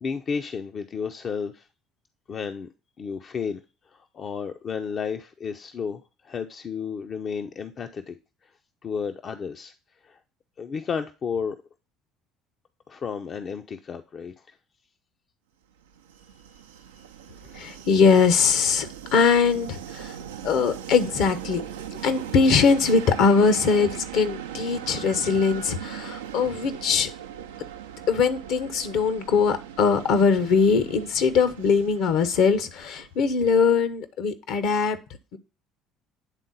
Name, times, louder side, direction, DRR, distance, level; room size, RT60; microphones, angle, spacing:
voice 1, 0.0-1.7 2.3-2.7 3.0-3.6 3.9-8.2 8.8-9.7 10.0-10.2 10.6-11.6 12.9-14.6 17.0-17.1, left 6 dB, 45° left, 6 dB, 0.6 m, -32 dB
Train, 15.8-33.6, right 9 dB, 85° right, 0.4 m, -39 dB
voice 2, 17.5-20.1 20.4-21.6 21.9-27.1 28.1-35.0 35.3-35.4, left 5 dB, 65° left, 11 dB, 0.9 m, -21 dB
9.1 x 3.7 x 4.0 m, 0.31 s
hypercardioid pair, 60°, 0 cm